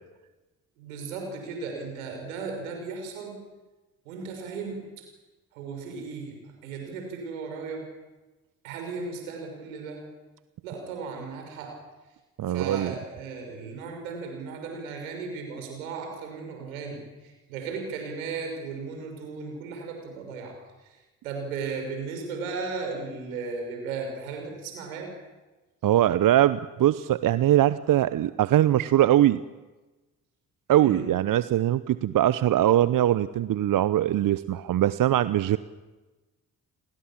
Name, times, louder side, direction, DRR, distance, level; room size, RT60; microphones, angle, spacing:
voice 1, 0.8-3.4 4.0-4.8 5.5-7.9 8.6-10.0 10.6-11.8 12.5-20.6 20.8-21.0 21.2-25.1 30.8-31.1, right 4 dB, 80° right, 3 dB, 6.1 m, -36 dB
voice 2, 12.4-13.0 25.8-29.4 30.7-35.6, right 12 dB, 50° right, 16 dB, 0.9 m, -22 dB
29.5 x 20.5 x 7.5 m, 1.1 s
figure-of-eight pair, 40°, 41 cm